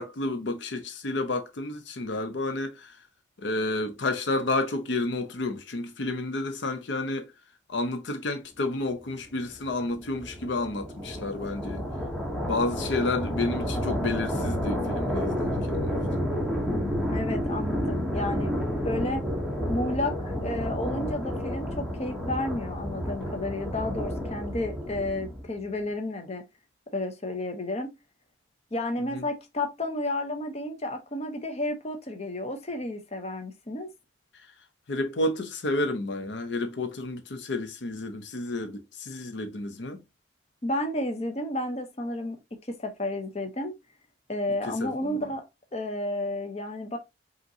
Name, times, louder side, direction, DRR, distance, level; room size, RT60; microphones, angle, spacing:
voice 1, 0.0-3.0 3.4-7.3 7.7-11.8 12.5-16.3 29.0-29.3 34.3-34.5 34.9-40.0 44.7-45.2, left 2 dB, 70° left, 0.6 m, -31 dB
sound 1, 9.3-25.6, equal, ahead, 0.9 m, -30 dB
voice 2, 17.1-18.6 18.8-19.2 19.7-26.4 26.9-27.9 28.7-33.9 40.6-43.7 44.3-45.4 45.7-47.0, left 1 dB, 35° left, 0.7 m, -31 dB
5.2 x 2.9 x 2.7 m
head